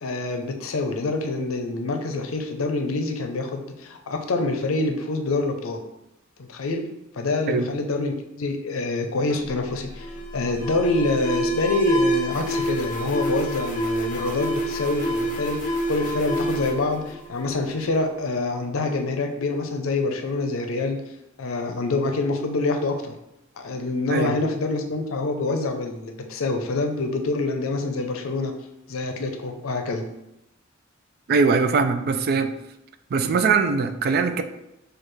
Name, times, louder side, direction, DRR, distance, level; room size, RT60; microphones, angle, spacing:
voice 1, 0.0-5.8 6.4-6.8 7.1-21.0 21.4-23.1 23.6-28.5 28.9-30.1, left 2 dB, 85° left, 5 dB, 0.5 m, -26 dB
Alarm, 9.3-17.9, equal, 40° left, 0.6 m, -28 dB
voice 2, 31.3-32.5 33.1-34.4, right 5 dB, 50° right, 9 dB, 0.4 m, -21 dB
6.5 x 2.4 x 3.1 m, 0.89 s
head